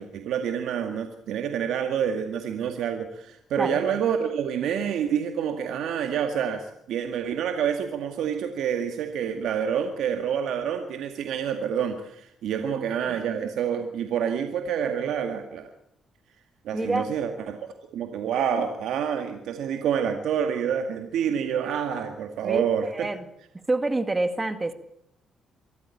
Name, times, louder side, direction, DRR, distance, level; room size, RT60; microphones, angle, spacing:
voice 1, 0.0-15.7 16.7-17.6 17.9-23.1, right 8 dB, 80° right, 6 dB, 2.1 m, -28 dB
voice 2, 12.5-12.8 16.7-17.1 22.4-23.3 23.7-24.7, right 2 dB, 20° right, 11 dB, 2.0 m, -27 dB
25.0 x 14.0 x 8.6 m, 0.77 s
cardioid pair, 90°, 0 cm